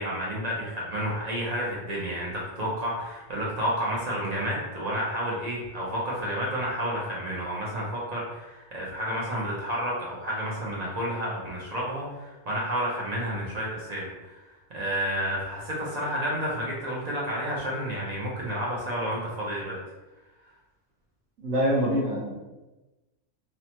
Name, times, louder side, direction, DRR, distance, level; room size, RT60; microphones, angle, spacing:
voice 1, 0.0-14.4 14.7-19.8, equal, 55° right, -5 dB, 0.4 m, -30 dB
voice 2, 21.4-22.3, equal, 70° right, -3 dB, 1.1 m, -24 dB
3.0 x 2.0 x 2.8 m, 1.1 s
omnidirectional pair, 1.4 m